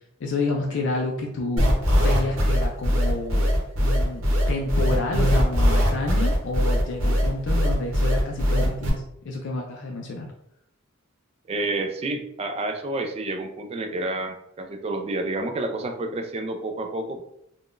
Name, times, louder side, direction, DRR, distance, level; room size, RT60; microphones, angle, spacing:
voice 1, 0.2-1.7 2.0-3.5 3.8-10.3, left 2 dB, 60° left, 1 dB, 0.4 m, -29 dB
sound 1, 1.6-8.9, equal, 70° right, 0.8 m, -20 dB
voice 2, 11.5-17.2, right 2 dB, 30° right, 5 dB, 0.3 m, -29 dB
3.6 x 2.2 x 2.4 m, 0.80 s
head